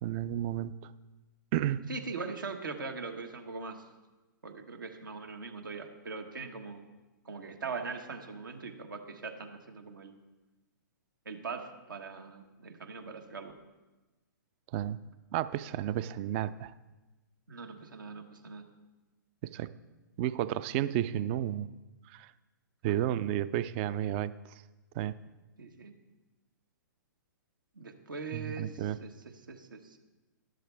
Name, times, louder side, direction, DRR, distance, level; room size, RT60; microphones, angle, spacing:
voice 1, 0.0-0.7 1.5-1.9 14.7-15.0 15.3-16.7 19.5-19.7 20.2-21.7 22.1-22.3 22.8-24.3 24.9-25.2 28.3-29.0, right 12 dB, 35° right, 16 dB, 0.4 m, -32 dB
voice 2, 1.9-3.8 4.4-6.8 7.2-10.1 11.2-13.5 17.5-18.7 22.9-23.0 25.6-25.9 27.7-30.0, right 4 dB, 80° right, 5 dB, 1.4 m, -41 dB
12.0 x 11.5 x 3.4 m, 1.1 s
hypercardioid pair, 125°, 11 cm